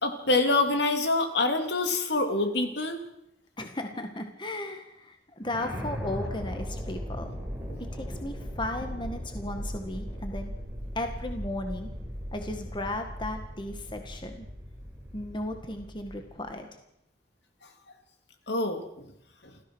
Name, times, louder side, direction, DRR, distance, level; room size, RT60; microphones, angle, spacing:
voice 1, 0.0-3.0 7.7-7.8 18.5-19.0, left 2 dB, 70° left, 5 dB, 3.0 m, -26 dB
voice 2, 3.6-7.3 7.9-10.5 11.0-11.9 12.3-14.5 15.1-16.8, left 1 dB, 25° left, 5 dB, 1.8 m, -35 dB
sound 1, 5.4-16.5, equal, 10° right, 5.1 m, -38 dB
28.5 x 14.5 x 6.3 m, 0.80 s
head